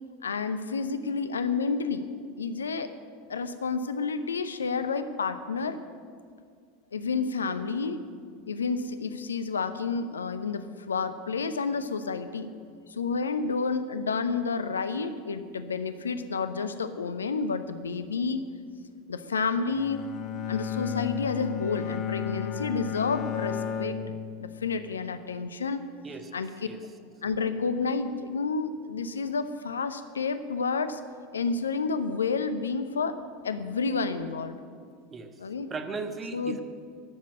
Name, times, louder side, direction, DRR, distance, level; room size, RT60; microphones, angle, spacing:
voice 1, 0.2-2.0 2.4-2.9 3.3-5.8 6.9-8.0 8.5-12.5 12.9-18.5 19.1-20.1 20.5-24.0 24.4-25.8 26.3-26.5 27.2-31.0 31.3-33.2 33.4-34.6 35.4-35.7 36.3-36.6, left 4 dB, 80° left, 11 dB, 0.7 m, -30 dB
Bowed string instrument, 19.7-24.9, left 9 dB, 45° left, 0.9 m, -33 dB
voice 2, 35.7-36.6, right 4 dB, 25° right, 7 dB, 1.3 m, -36 dB
11.5 x 7.4 x 9.4 m, 2.1 s
figure-of-eight pair, 80°, 0 cm